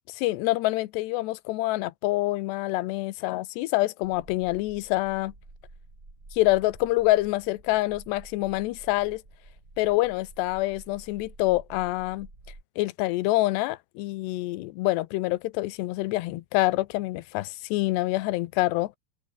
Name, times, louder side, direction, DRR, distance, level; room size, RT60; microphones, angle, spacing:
voice 1, 0.2-5.3 6.4-9.2 9.8-12.3 12.8-19.0, left 18 dB, 80° left, 3.0 m, -26 dB
sound 1, 4.0-12.6, right 2 dB, 20° right, 5.1 m, -50 dB
omnidirectional pair, 4.9 m